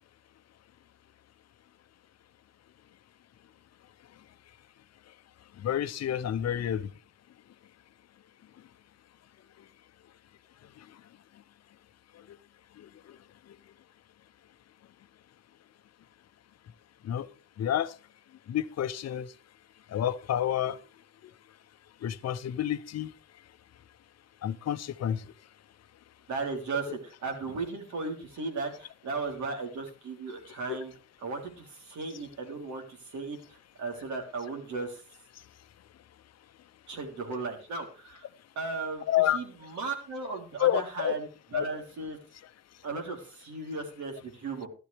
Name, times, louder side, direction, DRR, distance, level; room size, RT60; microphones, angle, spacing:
voice 1, 5.6-6.9 12.3-12.4 12.8-13.2 17.0-17.3 17.6-17.9 18.5-19.3 19.9-20.8 22.0-23.1 24.4-25.2 39.1-39.4 40.6-41.1 41.5-41.6, left 11 dB, 60° left, 0.8 m, -29 dB
voice 2, 26.3-30.9 31.2-35.0 36.9-38.3 38.6-42.2 42.8-44.7, right 3 dB, 70° right, 3.6 m, -36 dB
12.5 x 12.0 x 3.4 m
cardioid pair, 90°, 30 cm